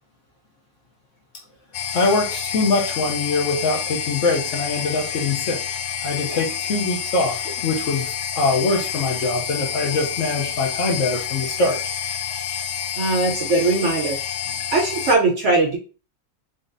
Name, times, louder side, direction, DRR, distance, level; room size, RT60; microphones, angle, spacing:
sound 1, 1.7-15.2, left 8 dB, 80° left, 0.6 m, -28 dB
voice 1, 1.9-5.6 6.0-11.8, left 3 dB, 55° left, 0 dB, 1.0 m, -23 dB
voice 2, 13.0-14.2 14.7-15.8, right 2 dB, 60° right, 0 dB, 0.8 m, -20 dB
4.1 x 3.7 x 2.6 m, 0.36 s
omnidirectional pair, 1.8 m